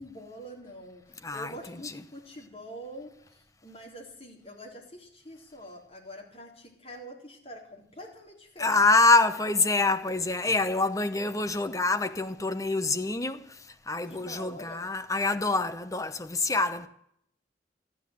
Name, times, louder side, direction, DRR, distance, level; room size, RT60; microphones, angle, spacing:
voice 1, 0.0-9.1 14.1-14.9, equal, 35° left, 3.8 m, -45 dB
voice 2, 1.2-1.9 8.6-13.6 13.9-16.9, left 3 dB, 20° left, 0.8 m, -26 dB
14.0 x 12.0 x 8.0 m
head